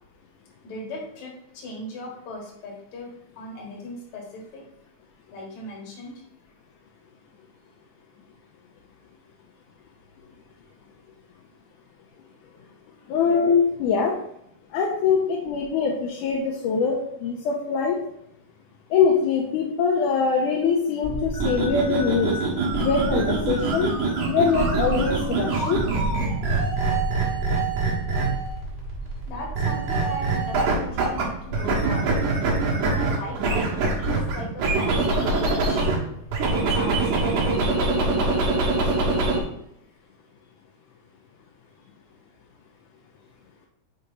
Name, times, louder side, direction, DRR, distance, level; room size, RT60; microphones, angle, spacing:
voice 1, 0.6-3.1 3.4-4.6 5.3-6.2 29.3-32.2 32.8-35.9 36.5-39.5, left 1 dB, 60° left, -1 dB, 2.5 m, -38 dB
voice 2, 13.1-14.2 14.7-18.0 18.9-22.4 22.8-23.9 24.3-25.8, left 5 dB, 80° left, -2 dB, 2.2 m, -23 dB
sound 1, 21.0-36.9, right 2 dB, 30° left, 1.2 m, -34 dB
sound 2, 21.3-28.5 29.5-31.2 31.5-36.0 36.3-39.4, right 3 dB, 75° right, 2.9 m, -24 dB
6.4 x 4.2 x 3.9 m, 0.76 s
omnidirectional pair, 3.7 m